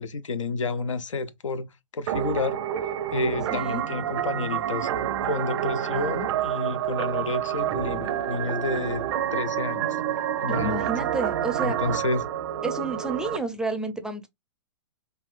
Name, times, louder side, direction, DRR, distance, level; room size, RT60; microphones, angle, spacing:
voice 1, 0.0-4.9 5.2-9.0 9.3-10.0 10.4-10.9 11.6-12.3, left 3 dB, 85° left, 0.5 m, -30 dB
sound 1, 2.1-13.4, right 10 dB, 60° right, 0.5 m, -28 dB
voice 2, 3.5-3.8 10.5-11.8 12.6-14.3, right 3 dB, 5° right, 0.5 m, -30 dB
3.4 x 2.3 x 2.4 m
hypercardioid pair, 120°, 16 cm